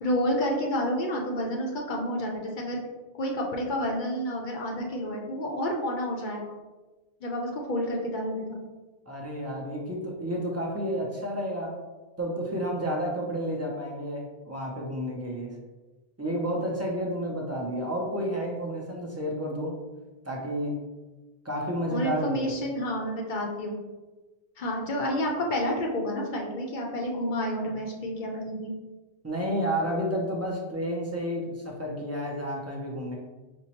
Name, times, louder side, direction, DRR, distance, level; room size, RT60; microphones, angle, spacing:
voice 1, 0.0-2.8 3.1-6.5 7.2-8.6 21.9-23.8 24.6-28.7, equal, 55° left, 0 dB, 0.7 m, -29 dB
voice 2, 9.1-11.8 12.2-15.6 16.2-19.8 20.2-20.8 21.4-22.5 27.6-27.7 29.2-33.1, equal, 25° right, -2 dB, 0.3 m, -31 dB
5.2 x 2.0 x 2.8 m, 1.2 s
omnidirectional pair, 1.1 m